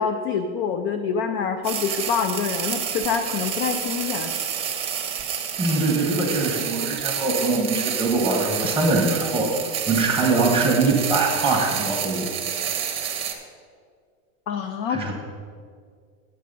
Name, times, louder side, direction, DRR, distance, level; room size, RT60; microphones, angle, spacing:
voice 1, 0.0-4.3 14.5-15.1, left 6 dB, 35° left, 7 dB, 0.4 m, -26 dB
sound 1, 1.6-13.3, right 8 dB, 15° right, 0.8 m, -29 dB
voice 2, 5.6-9.6 9.9-12.3 14.9-15.1, right 3 dB, 5° left, -2 dB, 1.0 m, -22 dB
9.2 x 7.5 x 5.2 m, 2.1 s
supercardioid pair, 155°, 40 cm